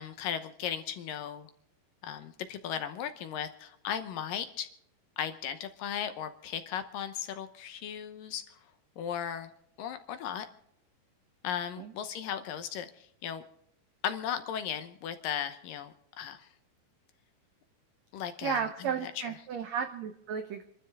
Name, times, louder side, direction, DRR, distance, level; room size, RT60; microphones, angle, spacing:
voice 1, 0.0-1.5 2.0-4.7 5.2-8.4 9.0-9.5 9.8-10.5 11.4-13.4 14.0-16.5 18.1-18.6 19.0-19.1, left 9 dB, 70° left, 9 dB, 2.4 m, -36 dB
voice 2, 18.4-20.6, right 7 dB, 90° right, 6 dB, 1.5 m, -34 dB
27.5 x 13.0 x 3.6 m, 0.72 s
omnidirectional pair, 4.5 m